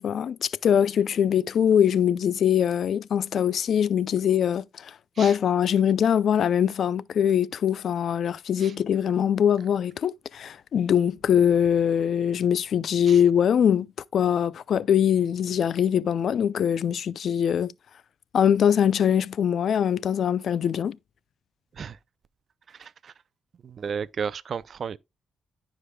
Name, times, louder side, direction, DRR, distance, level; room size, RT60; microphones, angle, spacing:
voice 1, 0.0-13.9 14.1-17.7 18.3-21.0, left 8 dB, 60° left, 0.3 m, -22 dB
voice 2, 22.8-23.1 23.6-25.0, right 6 dB, 50° right, 0.4 m, -33 dB
15.0 x 5.0 x 2.2 m
cardioid pair, 90°, 0 cm